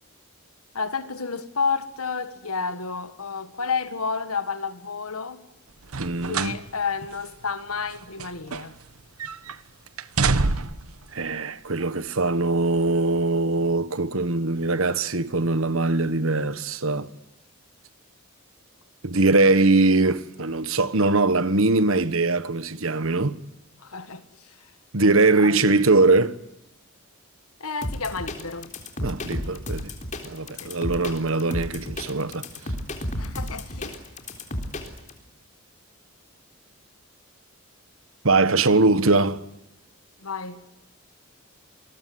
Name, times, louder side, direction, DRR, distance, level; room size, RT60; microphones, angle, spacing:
voice 1, 0.7-5.4 6.3-8.7 23.8-24.2 25.0-25.1 25.4-25.6 27.6-28.7 30.6-30.7 33.2-34.0 40.2-40.6, left 5 dB, 90° left, 1.8 m, -30 dB
sound 1, 5.8-6.6 7.0-7.1 7.9-8.9 9.2-9.6 10.0-10.9 11.8-11.9, right 4 dB, 85° right, 1.2 m, -26 dB
voice 2, 6.0-6.6 11.1-17.1 19.0-23.4 24.9-26.4 29.0-29.9 30.2-32.5 38.2-39.4, right 3 dB, 70° right, 1.4 m, -21 dB
sound 2, 27.8-35.1, left 1 dB, 35° left, 3.8 m, -32 dB
28.0 x 21.0 x 9.6 m
head